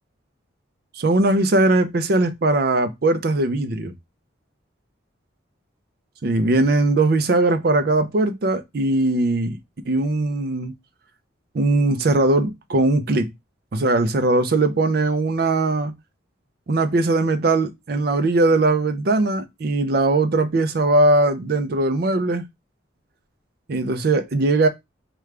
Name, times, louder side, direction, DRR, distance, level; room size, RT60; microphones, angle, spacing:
voice 1, 1.0-3.9 6.2-9.6 9.9-10.7 11.5-13.3 13.7-15.9 16.7-22.4 23.7-24.7, right 2 dB, 50° right, 0.4 m, -20 dB
4.8 x 2.3 x 3.2 m
head